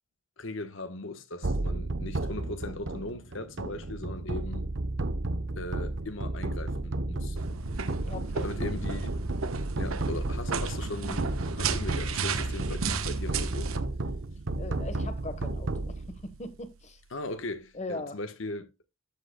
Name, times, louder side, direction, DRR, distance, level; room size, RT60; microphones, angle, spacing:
voice 1, 0.4-4.7 5.6-7.4 8.4-9.1 9.8-13.7 17.1-18.7, left 2 dB, 65° left, 1.1 m, -38 dB
sound 1, 1.4-16.7, right 2 dB, 60° right, 0.8 m, -33 dB
sound 2, 7.4-13.8, right 4 dB, 90° right, 1.1 m, -34 dB
voice 2, 8.0-8.5 14.6-17.0 17.7-18.2, left 2 dB, 35° left, 1.2 m, -40 dB
13.5 x 7.7 x 2.2 m
head